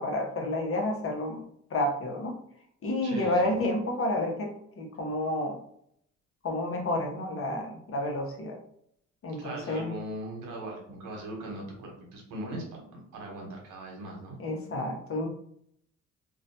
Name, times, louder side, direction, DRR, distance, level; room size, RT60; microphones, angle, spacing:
voice 1, 0.0-1.4 1.7-2.4 2.8-5.6 6.4-8.6 9.2-10.0 14.4-15.3, left 1 dB, 45° left, 2 dB, 0.7 m, -30 dB
voice 2, 3.0-3.6 9.4-12.8 13.1-14.4, right 1 dB, 80° right, 0 dB, 0.9 m, -39 dB
2.3 x 2.2 x 2.7 m, 0.68 s
cardioid pair, 90°, 30 cm